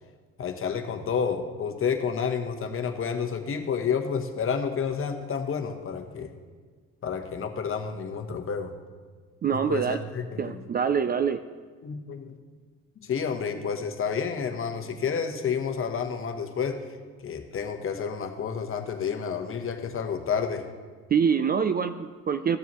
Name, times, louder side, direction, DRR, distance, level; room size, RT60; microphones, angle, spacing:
voice 1, 0.4-6.3 7.0-8.7 9.5-10.6 11.8-12.3 13.0-16.8 17.2-20.6, left 6 dB, 40° left, 6 dB, 1.1 m, -30 dB
voice 2, 9.4-10.0 10.4-11.4 21.1-22.6, right 7 dB, 30° right, 11 dB, 0.4 m, -25 dB
15.5 x 7.0 x 3.0 m, 1.5 s
cardioid pair, 90°, 32 cm